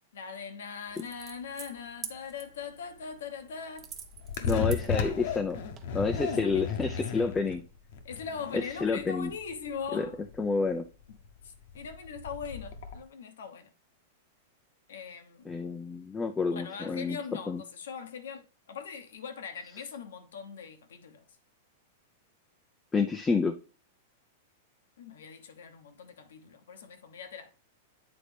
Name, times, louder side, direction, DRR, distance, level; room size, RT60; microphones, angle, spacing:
voice 1, 0.1-3.9 4.4-5.0 6.4-7.4 8.0-10.2 11.4-13.7 14.9-15.5 16.5-21.2 25.0-27.5, left 6 dB, 85° left, 1.0 m, -41 dB
sound 1, 0.9-5.9, right 7 dB, 25° right, 0.8 m, -48 dB
sound 2, 3.8-13.0, left 6 dB, 65° left, 0.9 m, -35 dB
voice 2, 4.5-5.6 5.9-7.6 8.8-9.3 9.9-10.1 10.4-10.8 15.5-17.2 17.5-17.6 22.9-23.5, left 4 dB, 10° left, 0.4 m, -29 dB
8.3 x 3.9 x 3.3 m
supercardioid pair, 145°, 0 cm